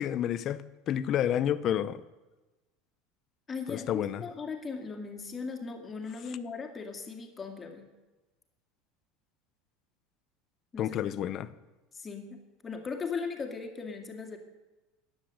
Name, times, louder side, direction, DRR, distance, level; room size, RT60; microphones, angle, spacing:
voice 1, 0.0-2.0 3.7-4.2 10.8-11.5, left 10 dB, 40° left, 0.8 m, -30 dB
voice 2, 3.5-7.9 10.7-11.1 11.9-14.4, left 5 dB, 20° left, 2.2 m, -38 dB
15.5 x 10.0 x 7.7 m
supercardioid pair, 145°, 0 cm